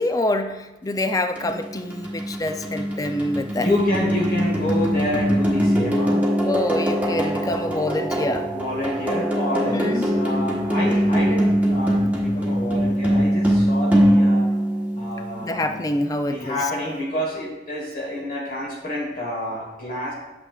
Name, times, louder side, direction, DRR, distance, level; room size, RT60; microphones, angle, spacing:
voice 1, 0.0-3.7 6.4-8.5 9.5-10.1 15.4-16.6, left 1 dB, 20° left, 8 dB, 0.4 m, -26 dB
sound 1, 1.4-15.5, equal, 10° right, 1.1 m, -22 dB
voice 2, 3.5-6.3 8.5-14.6 14.9-15.8 16.3-20.1, left 1 dB, 50° left, -3 dB, 1.4 m, -28 dB
8.6 x 7.2 x 2.3 m, 1.0 s
head